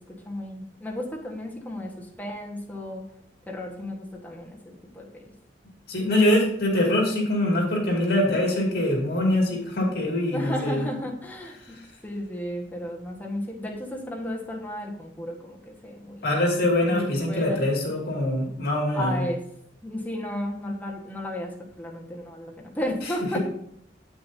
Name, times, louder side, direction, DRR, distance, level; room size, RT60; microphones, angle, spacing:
voice 1, 0.2-3.0 3.5-5.1 10.3-16.2 16.9-17.6 18.9-19.4 19.8-23.4, left 1 dB, 10° left, -1 dB, 1.5 m, -33 dB
voice 2, 5.9-10.9 11.6-11.9 16.2-19.3 23.0-23.4, left 1 dB, 60° left, 0 dB, 2.5 m, -24 dB
8.6 x 8.0 x 2.8 m, 0.69 s
head